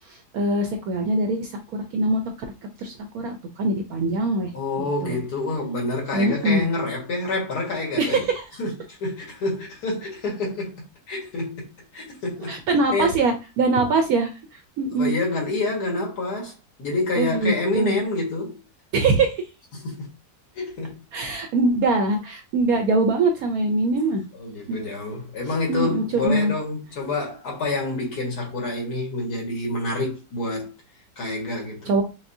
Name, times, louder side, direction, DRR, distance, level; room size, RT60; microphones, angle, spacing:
voice 1, 0.1-2.2 2.8-4.5 4.8-5.2 6.1-6.6 8.0-8.4 12.5-15.1 17.2-18.0 18.9-19.5 21.1-24.2 24.7-24.8 25.7-26.5 31.9-32.0, right 2 dB, 70° right, 0.9 m, -23 dB
voice 2, 4.5-8.2 8.6-10.7 11.1-11.7 11.9-12.6 12.9-13.1 15.0-16.5 16.8-18.6 19.7-20.1 20.6-21.0 24.3-30.7 31.2-31.9, left 2 dB, 60° left, 1.8 m, -27 dB
6.0 x 2.1 x 2.6 m
omnidirectional pair, 1.9 m